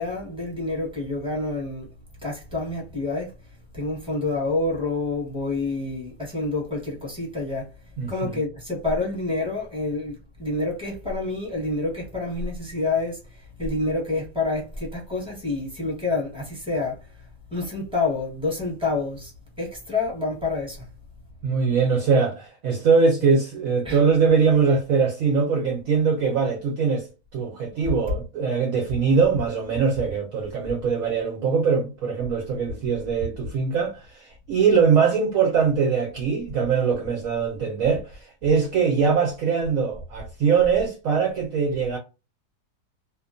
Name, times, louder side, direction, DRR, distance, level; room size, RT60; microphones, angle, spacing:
voice 1, 0.0-1.9 2.2-3.3 3.7-7.6 8.1-17.0 17.5-19.3 19.6-20.9 23.8-24.0, left 3 dB, 5° right, 0.9 m, -28 dB
voice 2, 8.0-8.4 21.4-27.1 27.3-42.0, right 5 dB, 65° right, 0.9 m, -22 dB
2.8 x 2.2 x 2.5 m
omnidirectional pair, 1.9 m